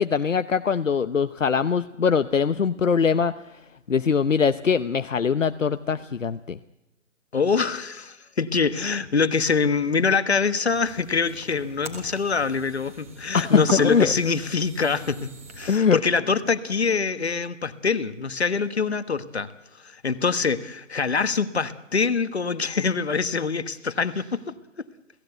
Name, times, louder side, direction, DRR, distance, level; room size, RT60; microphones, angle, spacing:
voice 1, 0.0-3.3 3.9-6.6 13.3-14.1 15.7-16.0, left 6 dB, 70° left, 12 dB, 0.9 m, -22 dB
voice 2, 7.3-19.5 19.8-24.4, left 5 dB, 55° left, 13 dB, 1.4 m, -24 dB
sound 1, 10.7-15.8, right 3 dB, 10° right, 1.6 m, -39 dB
28.5 x 16.5 x 8.0 m, 0.98 s
figure-of-eight pair, 170°, 40 cm